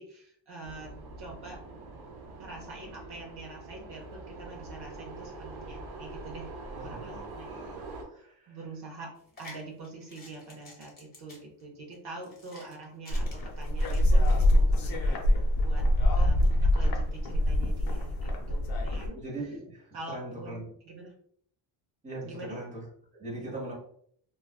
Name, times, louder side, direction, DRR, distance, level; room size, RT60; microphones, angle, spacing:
voice 1, 0.0-1.6 2.4-6.5 6.8-7.8 8.2-9.1 9.4-15.8 16.1-19.2 19.9-21.1 22.2-22.6, right 2 dB, 55° right, -1 dB, 0.8 m, -45 dB
sound 1, 0.6-8.0, right 2 dB, 80° right, 0.9 m, -44 dB
voice 2, 6.7-7.8 8.1-8.3 19.1-20.6 22.0-22.8 23.1-23.7, right 2 dB, 15° right, -3 dB, 0.9 m, -40 dB
sound 2, 9.2-14.4, left 2 dB, 20° left, 1.0 m, -52 dB
sound 3, 13.1-19.1, left 1 dB, 50° left, 0.6 m, -24 dB
3.1 x 2.3 x 2.2 m, 0.62 s
cardioid pair, 135°, 47 cm